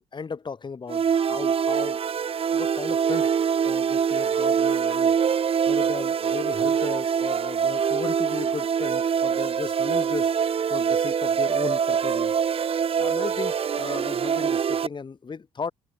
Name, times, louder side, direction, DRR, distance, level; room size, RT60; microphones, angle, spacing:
voice 1, 0.1-2.0 2.5-3.3 3.6-5.2 5.7-10.3 10.7-12.3 13.0-15.7, left 5 dB, 35° left, 5.4 m, -35 dB
sound 1, 0.9-14.9, right 7 dB, 45° right, 1.6 m, -24 dB
supercardioid pair, 75°, 14 cm